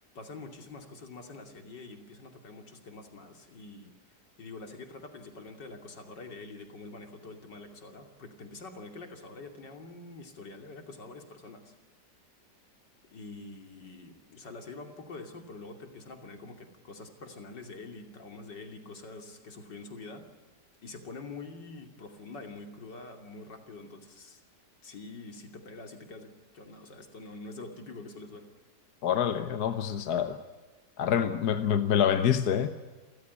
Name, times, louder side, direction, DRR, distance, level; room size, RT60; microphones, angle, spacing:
voice 1, 0.0-3.9 4.4-11.8 13.1-20.2 20.8-24.4 24.8-28.5, left 3 dB, 85° left, 5 dB, 3.4 m, -45 dB
voice 2, 29.0-30.4 31.0-32.7, left 8 dB, 65° left, 9 dB, 1.5 m, -26 dB
29.0 x 15.0 x 9.5 m, 1.3 s
omnidirectional pair, 1.8 m